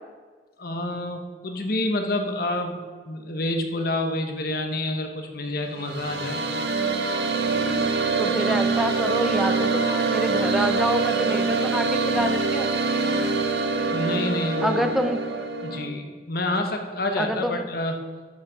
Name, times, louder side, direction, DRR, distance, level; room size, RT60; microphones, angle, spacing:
voice 1, 0.6-2.8 3.0-6.4 13.9-14.9 15.6-18.0, left 1 dB, 55° left, 5 dB, 1.1 m, -28 dB
sound 1, 5.6-15.9, right 4 dB, 65° right, 0.9 m, -24 dB
voice 2, 8.2-12.7 14.6-15.2 17.2-17.6, equal, ahead, 6 dB, 0.6 m, -27 dB
12.5 x 6.5 x 4.7 m, 1.5 s
head